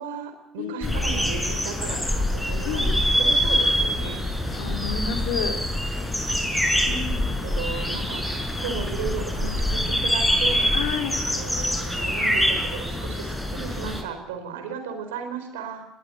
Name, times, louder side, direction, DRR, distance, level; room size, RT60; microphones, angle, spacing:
voice 1, 0.0-4.2 7.1-10.8 11.3-15.8, right 6 dB, 70° right, 7 dB, 4.4 m, -35 dB
voice 2, 0.6-1.0 2.6-2.9 4.5-5.5 6.9-7.3 10.7-11.2, left 7 dB, 65° left, 4 dB, 3.3 m, -30 dB
sound 1, 0.8-14.0, equal, 5° left, 6.0 m, -25 dB
21.0 x 19.0 x 8.5 m, 0.82 s
figure-of-eight pair, 60°, 0 cm